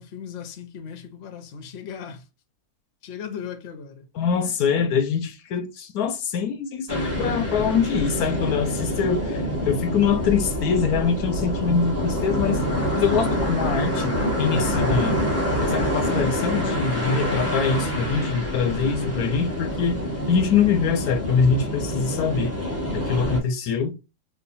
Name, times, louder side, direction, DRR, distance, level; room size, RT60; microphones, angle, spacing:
voice 1, 0.0-2.3 3.0-4.1, left 7 dB, 55° left, 0.8 m, -37 dB
voice 2, 4.2-12.6 12.9-15.2 15.6-20.0 20.3-22.5 22.9-23.9, left 6 dB, 75° left, 1.1 m, -24 dB
sound 1, 6.9-23.4, equal, 10° right, 1.1 m, -26 dB
3.1 x 2.4 x 4.0 m
omnidirectional pair, 1.7 m